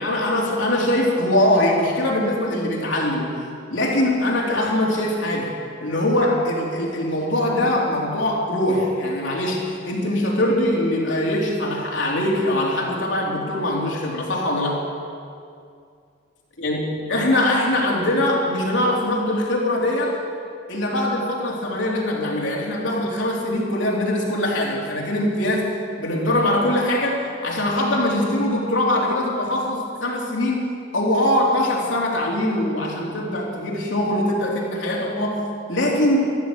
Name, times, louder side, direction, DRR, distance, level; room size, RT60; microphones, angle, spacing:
voice 1, 0.0-3.3 3.7-5.5 5.8-14.8 16.6-16.8 17.1-20.1 20.7-25.7 26.0-30.6 30.9-36.3, left 1 dB, 75° left, -3 dB, 3.4 m, -22 dB
14.5 x 13.5 x 6.8 m, 2.3 s
head